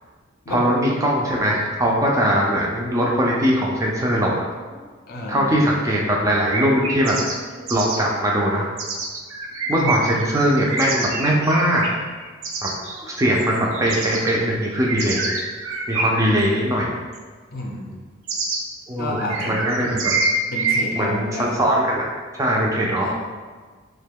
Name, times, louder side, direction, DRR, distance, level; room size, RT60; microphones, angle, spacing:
voice 1, 0.5-4.4 4.7-4.8 5.3-7.2 7.6-8.7 9.7-11.8 12.6-15.3 15.9-16.9 18.9-20.2 21.0-22.0 22.4-23.1, equal, 15° right, -3 dB, 0.3 m, -21 dB
voice 2, 5.1-5.6 9.7-10.1 17.5-18.0 19.0-20.0 20.5-21.6 23.0-23.1, left 1 dB, 50° left, -1 dB, 0.5 m, -30 dB
sound 1, 6.5-7.4 7.7-8.0 8.8-13.0 13.4-14.3 14.7-16.4 17.1-17.2 18.3-18.6 19.2-20.9, right 3 dB, 80° right, 0.5 m, -26 dB
3.0 x 2.2 x 3.4 m, 1.4 s
head